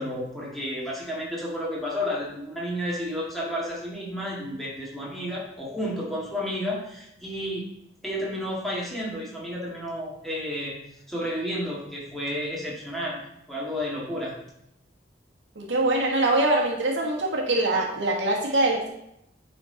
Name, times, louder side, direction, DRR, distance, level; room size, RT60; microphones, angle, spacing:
voice 1, 0.0-7.6 8.0-10.8 11.1-13.2 13.5-14.3, equal, ahead, -5 dB, 1.8 m, -31 dB
voice 2, 15.5-18.9, right 2 dB, 80° right, -2 dB, 1.6 m, -23 dB
9.4 x 4.4 x 3.8 m, 0.79 s
head